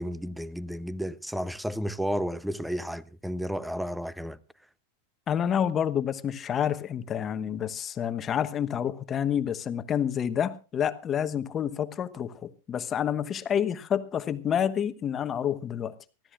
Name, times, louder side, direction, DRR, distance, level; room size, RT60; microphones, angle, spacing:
voice 1, 0.0-4.4, equal, ahead, 0.7 m, -32 dB
voice 2, 5.3-15.9, left 9 dB, 25° left, 1.1 m, -28 dB
24.0 x 15.0 x 2.5 m
figure-of-eight pair, 95°, 0 cm